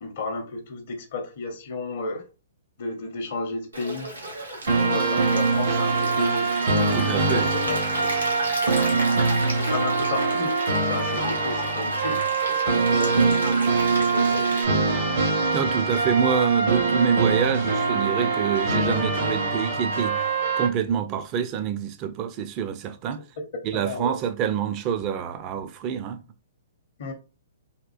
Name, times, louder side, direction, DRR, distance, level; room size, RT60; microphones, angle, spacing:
voice 1, 0.0-2.2 2.8-4.1 4.8-7.0 7.3-8.2 8.6-9.2 9.5-15.1 23.7-24.2 27.0-27.1, left 3 dB, 55° left, 0.7 m, -34 dB
Stream, 3.7-14.6, right 1 dB, 90° right, 1.1 m, -35 dB
sound 1, 4.7-20.7, right 3 dB, 65° right, 1.0 m, -23 dB
voice 2, 6.9-7.5 15.5-20.2 20.6-23.2 23.6-26.2, right 8 dB, 30° right, 0.4 m, -26 dB
3.5 x 2.4 x 2.4 m
figure-of-eight pair, 120°, 0 cm